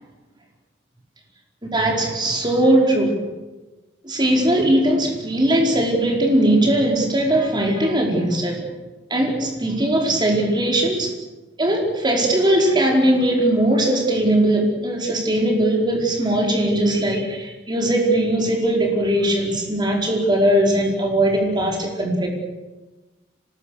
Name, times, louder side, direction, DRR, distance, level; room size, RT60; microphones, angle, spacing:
voice 1, 1.7-3.2 4.0-8.6 9.1-11.1 11.6-22.3, right 1 dB, 25° right, 0 dB, 4.8 m, -19 dB
26.5 x 20.0 x 6.7 m, 1.1 s
head